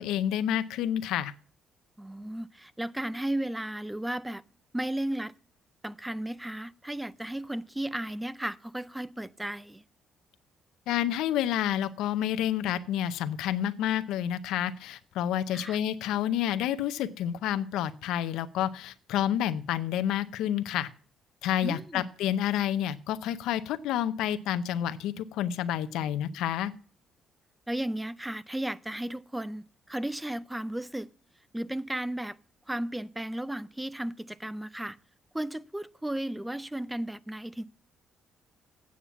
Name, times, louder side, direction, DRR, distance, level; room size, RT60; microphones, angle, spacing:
voice 1, 0.0-1.3 10.9-20.9 21.4-26.7, left 11 dB, 85° left, 0.6 m, -29 dB
voice 2, 2.0-4.4 4.7-5.3 5.8-9.8 15.5-15.8 21.6-22.1 27.7-31.1 31.5-32.4 32.7-35.0 35.3-37.6, right 1 dB, 10° right, 0.5 m, -34 dB
8.6 x 7.2 x 7.0 m
cardioid pair, 80°, 0 cm